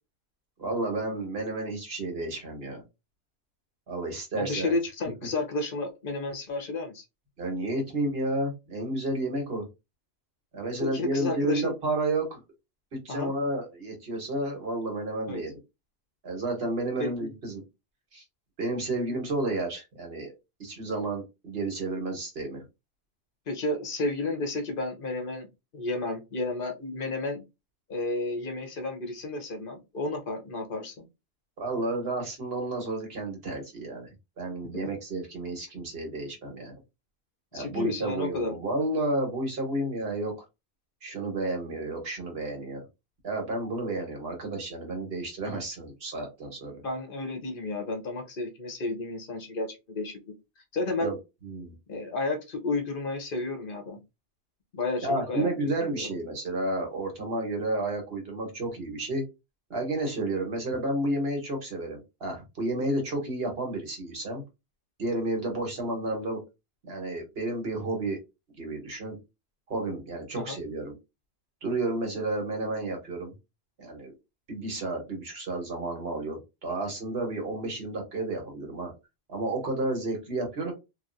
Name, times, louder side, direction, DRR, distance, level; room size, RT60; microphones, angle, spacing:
voice 1, 0.6-2.8 3.9-4.7 7.4-9.6 10.5-12.4 13.0-15.6 16.2-17.6 18.1-18.2 18.6-20.3 20.6-22.6 31.6-36.7 37.5-40.3 41.0-42.8 43.2-46.7 51.0-51.2 51.4-51.7 55.0-59.2 59.7-64.4 65.0-66.4 66.9-68.2 68.6-69.1 69.7-70.9 71.6-73.3 73.8-74.1 74.5-78.9 79.3-80.7, right 2 dB, 70° right, 2 dB, 1.5 m, -31 dB
voice 2, 4.4-7.0 10.8-11.7 13.1-13.3 15.3-15.4 17.0-17.1 23.5-25.5 25.7-27.4 27.9-31.1 34.7-34.9 37.5-38.5 46.8-50.3 50.7-51.1 51.9-54.0 54.7-56.1 70.4-70.6, left 2 dB, 60° left, 4 dB, 1.0 m, -32 dB
3.1 x 2.6 x 2.5 m, 0.24 s
omnidirectional pair, 1.1 m